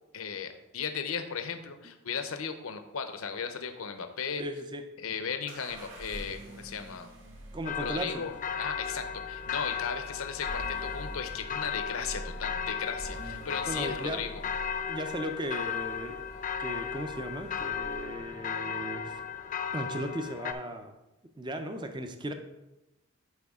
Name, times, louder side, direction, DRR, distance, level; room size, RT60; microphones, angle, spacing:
voice 1, 0.1-4.4 5.0-7.1 7.8-8.3 8.6-14.4, left 6 dB, 80° left, 8 dB, 0.7 m, -36 dB
voice 2, 4.4-4.8 7.5-8.3 13.7-14.3 14.9-16.2 16.6-19.2 19.7-20.9 21.4-22.3, right 1 dB, 20° right, 7 dB, 0.5 m, -36 dB
sound 1, 5.5-18.3, right 1 dB, 60° right, 1.7 m, -46 dB
sound 2, 7.7-20.5, left 7 dB, 35° left, 0.5 m, -36 dB
11.0 x 4.7 x 3.6 m, 0.97 s
head